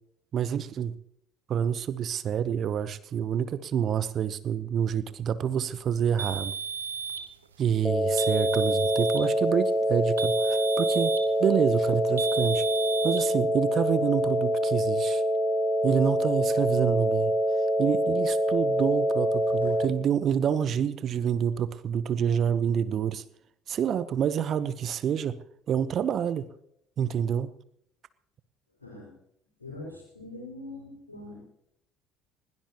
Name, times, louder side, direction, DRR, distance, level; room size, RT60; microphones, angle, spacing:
voice 1, 0.3-0.9 1.5-6.5 7.6-11.1 11.4-12.6 13.0-15.2 15.8-17.3 17.8-23.2 23.7-25.4 25.7-26.5 27.0-27.5, right 8 dB, 45° right, 15 dB, 0.9 m, -27 dB
sound 1, 6.2-7.3 8.2-9.3 10.2-11.3 12.2-13.2, right 5 dB, 80° right, 1.3 m, -33 dB
sound 2, 7.8-19.8, equal, 5° left, 3.8 m, -25 dB
voice 2, 28.8-29.1 29.6-31.5, left 2 dB, 85° left, -6 dB, 5.2 m, -42 dB
20.5 x 17.5 x 3.0 m, 0.73 s
figure-of-eight pair, 60°, 0 cm